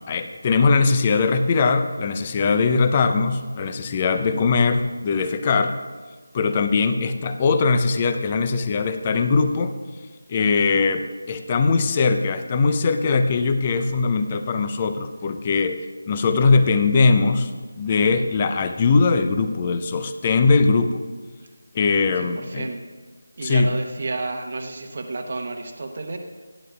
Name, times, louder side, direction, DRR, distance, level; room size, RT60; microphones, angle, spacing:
voice 1, 0.1-5.8 6.3-9.7 10.3-15.8 16.1-17.5 17.8-21.0 21.7-22.7 23.4-23.7, left 4 dB, 20° left, 9 dB, 0.5 m, -20 dB
voice 2, 22.2-22.8 23.4-26.2, right 3 dB, 40° right, 4 dB, 0.9 m, -31 dB
17.0 x 11.0 x 2.3 m, 1.4 s
figure-of-eight pair, 160°, 0 cm